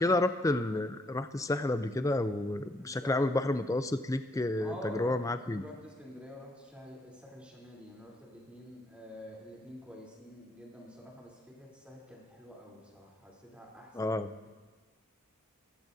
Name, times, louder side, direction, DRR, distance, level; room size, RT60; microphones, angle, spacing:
voice 1, 0.0-5.6 13.9-14.3, left 2 dB, 15° left, 10 dB, 0.4 m, -30 dB
voice 2, 2.8-3.3 4.6-14.2, equal, 5° right, -4 dB, 3.4 m, -48 dB
24.0 x 15.5 x 2.7 m, 1.3 s
head